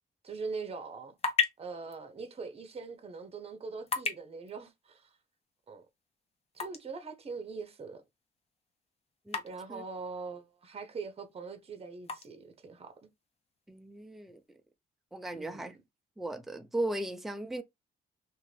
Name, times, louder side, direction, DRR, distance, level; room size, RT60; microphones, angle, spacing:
voice 1, 0.2-1.1 1.6-5.1 5.7-5.8 6.5-8.0 9.4-13.0 15.3-15.7, right 4 dB, 30° right, 0.7 m, -42 dB
sound 1, 0.7-14.6, left 5 dB, 30° left, 0.7 m, -41 dB
voice 2, 13.7-14.4 15.1-15.8 16.2-17.6, right 1 dB, ahead, 0.4 m, -36 dB
2.6 x 2.5 x 3.2 m
cardioid pair, 90°, 20 cm